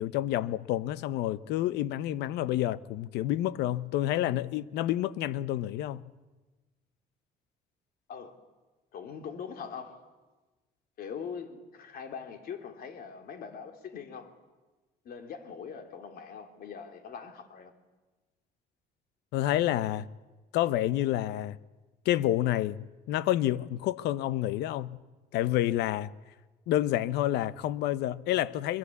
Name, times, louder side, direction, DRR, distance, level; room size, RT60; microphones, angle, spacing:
voice 1, 0.0-6.0 19.3-20.1 20.5-21.6 22.0-25.0 25.3-26.1 26.7-28.8, left 13 dB, 85° left, 0.8 m, -29 dB
voice 2, 8.9-10.0 11.0-14.3 15.0-17.7, left 6 dB, 60° left, 3.0 m, -42 dB
23.0 x 22.0 x 8.3 m
cardioid pair, 110°, 17 cm